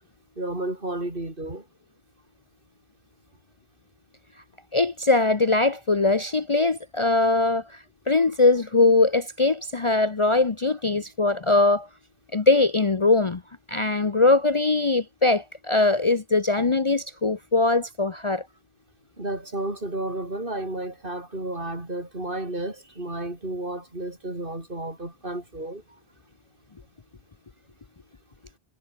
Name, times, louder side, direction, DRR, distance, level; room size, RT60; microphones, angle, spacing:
voice 1, 0.4-1.6 19.2-26.0, right 1 dB, 55° right, 5.1 m, -32 dB
voice 2, 4.7-11.9 12.3-13.4 13.7-18.5, left 3 dB, 30° left, 0.8 m, -21 dB
omnidirectional pair, 1.1 m